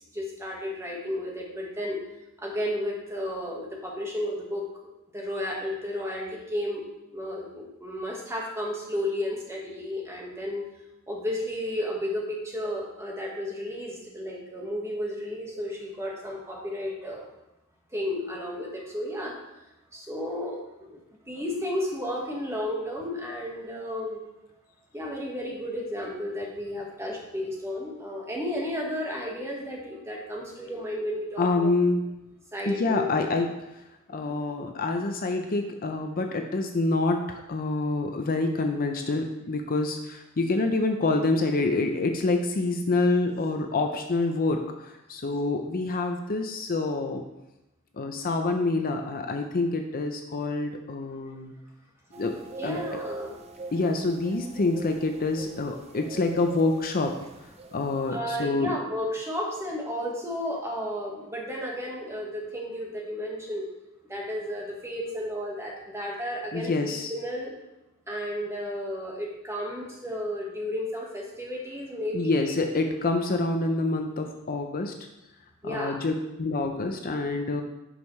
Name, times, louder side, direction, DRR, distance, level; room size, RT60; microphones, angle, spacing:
voice 1, 0.1-2.0 2.4-4.7 5.1-6.8 7.1-10.6 11.1-17.3 17.9-19.4 19.9-21.0 21.3-24.2 24.9-31.7 32.5-33.3 34.1-34.4 52.6-53.4 58.1-63.7 64.1-67.5 68.1-72.5 75.6-76.0, left 1 dB, 10° right, -2 dB, 1.5 m, -33 dB
voice 2, 31.4-32.0 32.7-33.5 34.1-47.2 48.0-51.6 52.2-52.3 52.6-52.8 53.7-57.2 57.7-58.8 66.5-67.1 72.1-74.9 75.6-77.6, left 3 dB, 40° left, 4 dB, 0.6 m, -27 dB
sound 1, 52.1-58.2, right 3 dB, 30° right, 0.6 m, -43 dB
11.0 x 5.3 x 3.2 m, 0.94 s
head